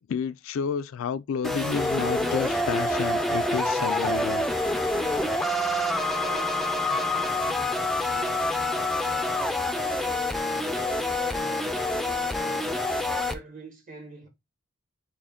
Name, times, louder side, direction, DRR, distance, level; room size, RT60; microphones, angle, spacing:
voice 1, 0.1-4.4, left 7 dB, 75° left, 0.3 m, -30 dB
sound 1, 1.4-13.3, left 1 dB, ahead, 0.3 m, -27 dB
voice 2, 6.2-10.3 10.7-14.3, right 2 dB, 40° right, 1.2 m, -45 dB
6.3 x 2.1 x 3.6 m
head